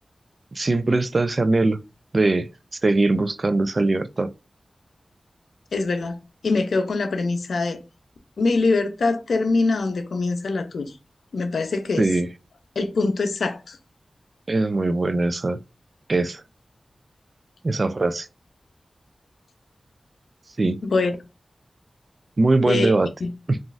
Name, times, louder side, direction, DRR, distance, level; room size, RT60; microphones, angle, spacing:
voice 1, 0.5-1.8 2.1-2.5 2.8-4.3 12.0-12.3 14.5-15.6 16.1-16.4 17.6-18.3 20.6-20.8 22.4-23.1 23.5-23.6, right 2 dB, 50° right, 0.3 m, -21 dB
voice 2, 5.7-6.2 6.4-7.8 8.4-10.9 11.3-12.1 12.8-13.8 20.8-21.1 22.7-22.9 23.2-23.3, left 3 dB, 90° left, 0.5 m, -23 dB
3.8 x 2.5 x 2.4 m
cardioid pair, 50°, 0 cm